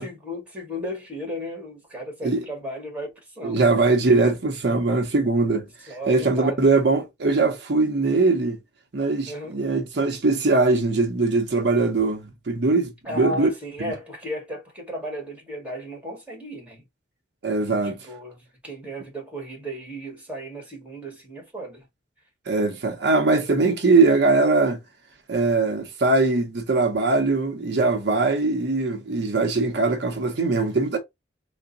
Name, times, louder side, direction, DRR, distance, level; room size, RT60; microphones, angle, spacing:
voice 1, 0.0-3.6 5.9-6.8 9.3-9.6 13.0-16.8 17.8-21.8, equal, 10° right, 1.5 m, -35 dB
voice 2, 3.4-5.6 6.1-8.6 8.9-13.5 13.8-13.9 17.4-18.0 22.5-24.8 25.3-31.0, right 3 dB, 70° right, 0.7 m, -21 dB
3.7 x 2.1 x 3.7 m
head